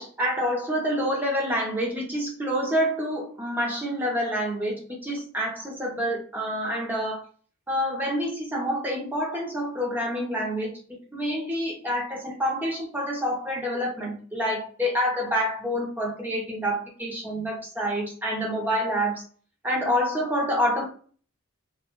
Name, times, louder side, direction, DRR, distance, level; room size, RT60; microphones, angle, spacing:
voice 1, 0.0-7.2 7.7-10.7 11.1-19.2 19.6-20.9, equal, 10° right, -2 dB, 0.6 m, -27 dB
2.2 x 2.2 x 2.9 m, 0.43 s
head